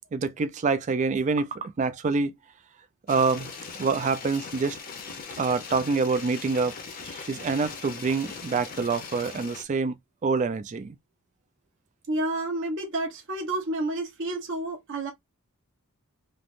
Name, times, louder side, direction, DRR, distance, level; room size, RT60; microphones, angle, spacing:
voice 1, 0.1-2.4 3.1-3.5 3.8-4.8 5.4-6.8 7.0-11.0, right 4 dB, 35° right, 0.3 m, -26 dB
sound 1, 3.1-9.6, left 5 dB, 40° left, 0.7 m, -40 dB
voice 2, 12.1-15.1, right 2 dB, 60° right, 1.0 m, -30 dB
3.2 x 2.1 x 2.5 m
head